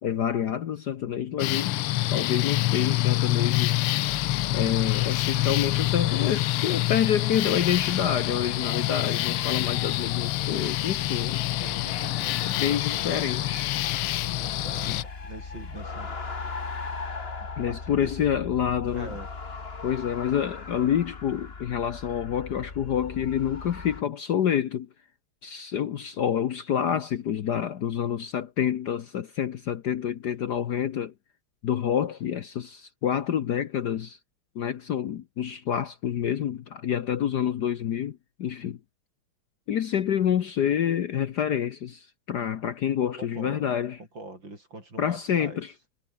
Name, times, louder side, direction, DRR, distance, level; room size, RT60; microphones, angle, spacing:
voice 1, 0.0-1.8 2.1-3.8 4.5-11.4 12.4-13.7 14.9-15.0 17.6-19.1 19.8-24.9 25.4-31.1 31.6-34.2 34.5-38.8 39.7-44.0 45.0-45.7, left 9 dB, 55° left, 1.3 m, -28 dB
sound 1, 1.4-15.0, left 16 dB, 85° left, 1.6 m, -26 dB
sound 2, 4.1-24.0, left 4 dB, 30° left, 2.1 m, -40 dB
voice 2, 11.6-13.7 14.4-16.2 17.4-19.3 43.2-43.7 44.1-45.6, right 2 dB, 55° right, 8.3 m, -43 dB
omnidirectional pair, 2.4 m